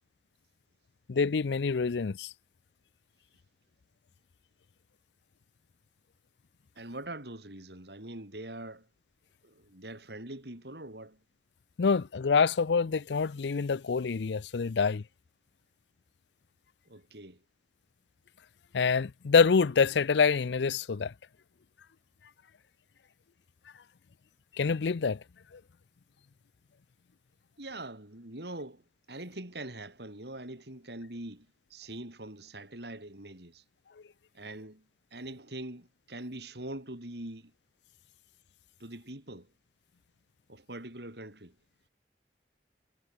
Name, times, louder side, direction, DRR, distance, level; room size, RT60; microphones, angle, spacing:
voice 1, 1.1-2.3 11.8-15.0 18.7-21.1 24.6-25.2, left 5 dB, 85° left, 0.5 m, -26 dB
voice 2, 6.8-8.9 9.4-11.2 16.9-17.4 27.6-28.8 29.1-33.6 34.3-34.8 35.1-37.5 38.8-39.5 40.5-41.5, right 1 dB, 75° right, 4.5 m, -43 dB
head